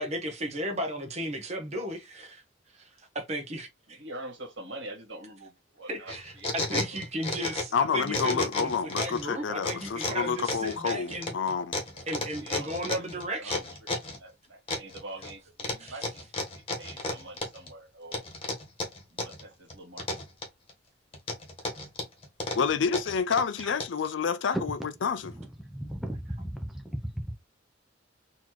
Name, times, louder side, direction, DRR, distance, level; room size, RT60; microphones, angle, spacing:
voice 1, 0.0-2.4 2.8-4.0 5.9-11.3 12.1-13.6 15.8-16.0, right 1 dB, 35° right, 1.0 m, -35 dB
voice 2, 3.9-6.5 6.9-7.0 11.9-13.0 13.4-13.7 14.0-16.1 16.7-18.2 19.1-20.1, right 1 dB, 70° right, 1.7 m, -45 dB
sound 1, 6.1-7.8 8.1-9.2 9.6-14.2 14.7-15.3 15.6-17.7 18.1-19.4 19.7-20.7 21.1-24.1, left 2 dB, 30° left, 1.2 m, -33 dB
voice 3, 7.7-11.7 22.6-25.3, left 6 dB, 70° left, 0.5 m, -28 dB
voice 4, 25.3-27.4, equal, ahead, 0.5 m, -35 dB
4.1 x 2.9 x 3.0 m
head